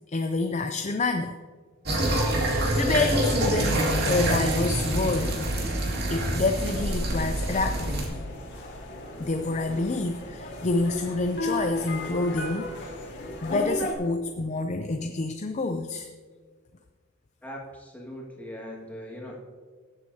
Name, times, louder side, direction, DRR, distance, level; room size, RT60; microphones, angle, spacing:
voice 1, 0.1-1.4 2.7-5.4 6.1-8.3 9.2-12.7 13.4-16.1, left 3 dB, 35° left, 5 dB, 0.5 m, -28 dB
sound 1, 1.9-8.1, right 1 dB, 50° right, 2.3 m, -26 dB
sound 2, 6.5-13.9, left 1 dB, 55° left, 1.8 m, -36 dB
voice 2, 17.4-19.4, equal, 10° left, -2 dB, 1.9 m, -40 dB
20.5 x 7.6 x 2.8 m, 1.5 s
head